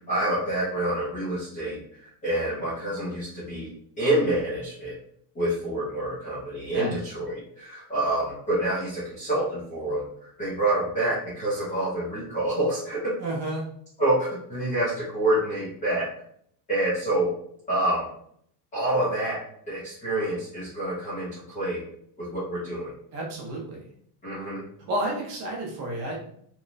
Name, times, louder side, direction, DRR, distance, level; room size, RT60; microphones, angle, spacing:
voice 1, 0.1-3.7 4.0-5.0 5.3-13.1 14.0-16.1 16.7-17.3 17.7-18.1 18.7-19.4 19.7-21.8 22.2-22.9 24.2-24.6, right 1 dB, 15° left, -10 dB, 0.4 m, -27 dB
voice 2, 13.2-13.7 23.1-23.9 24.9-26.2, right 1 dB, 35° right, -3 dB, 0.6 m, -31 dB
3.0 x 2.1 x 2.4 m, 0.67 s
cardioid pair, 175°, 49 cm